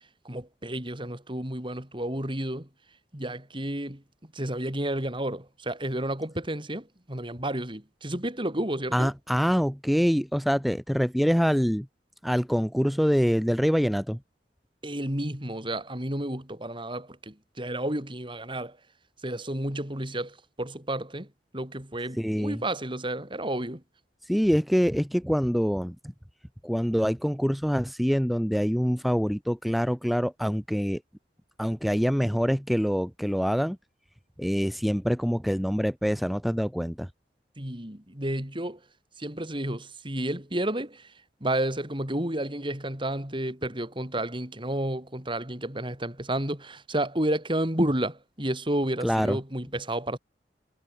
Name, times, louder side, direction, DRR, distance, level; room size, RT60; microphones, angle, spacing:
voice 1, 0.3-2.7 3.1-4.0 4.3-9.1 14.8-18.8 19.2-21.3 21.5-23.8 37.6-38.8 39.2-41.1 41.4-50.2, right 1 dB, 30° right, 5.3 m, -31 dB
voice 2, 8.9-11.9 12.2-14.2 22.2-22.6 24.3-26.0 26.6-31.0 31.6-33.8 34.4-37.1 49.0-49.4, equal, ahead, 2.8 m, -25 dB
head